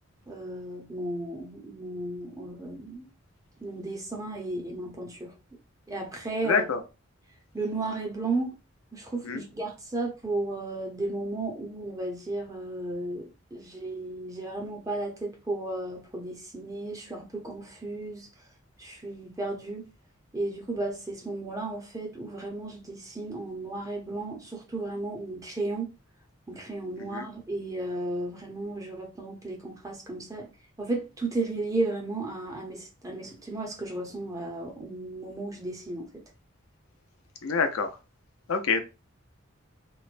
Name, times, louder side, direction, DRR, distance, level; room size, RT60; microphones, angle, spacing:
voice 1, 0.3-3.1 3.6-5.3 5.9-6.6 7.5-8.6 8.9-13.2 13.5-18.3 18.8-19.9 20.3-25.9 26.5-30.5 30.8-36.1, right 2 dB, 15° right, 0.6 m, -34 dB
voice 2, 6.4-6.8 9.2-9.4 27.0-27.3 37.4-38.0 38.5-38.8, left 5 dB, 80° left, 0.5 m, -26 dB
3.0 x 2.0 x 2.5 m
head